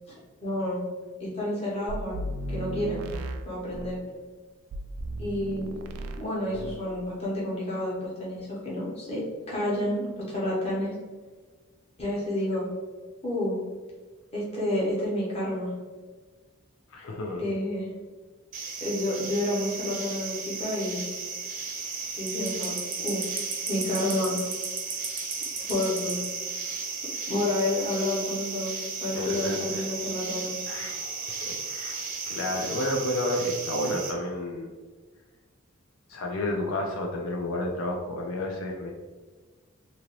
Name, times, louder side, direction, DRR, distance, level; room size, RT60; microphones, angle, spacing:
voice 1, 0.4-0.8 1.2-3.0 3.4-4.0 5.2-5.8 6.2-9.2 9.5-10.9 12.0-12.7 13.2-13.6 14.3-15.7 17.4-17.9 18.8-21.0 22.2-23.2 23.7-24.4 25.7-26.2 27.3-28.7 29.0-30.6, left 1 dB, 30° left, -6 dB, 1.0 m, -29 dB
sound 1, 1.9-4.0 4.7-6.3 6.5-6.9, right 1 dB, 90° right, 0.3 m, -35 dB
voice 2, 16.9-17.4 29.1-29.8 30.7-34.7 36.1-38.9, left 1 dB, 80° left, 1 dB, 0.4 m, -31 dB
sound 2, 18.5-34.1, right 4 dB, 40° right, 0.6 m, -34 dB
2.8 x 2.6 x 2.9 m, 1.4 s
head